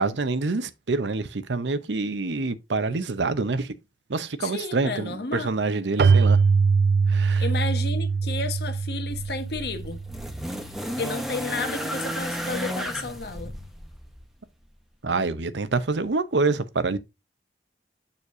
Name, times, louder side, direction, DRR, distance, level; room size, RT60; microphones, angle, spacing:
voice 1, 0.0-3.7 4.1-6.4 7.1-7.5 15.0-17.0, right 3 dB, 90° right, 0.8 m, -26 dB
voice 2, 4.4-5.5 7.4-10.0 11.0-13.6, left 3 dB, 65° left, 1.2 m, -32 dB
Keyboard (musical), 6.0-10.5, right 5 dB, 65° right, 0.4 m, -22 dB
sound 1, 9.1-14.3 15.4-15.5, equal, ahead, 0.9 m, -33 dB
7.0 x 6.5 x 2.6 m
head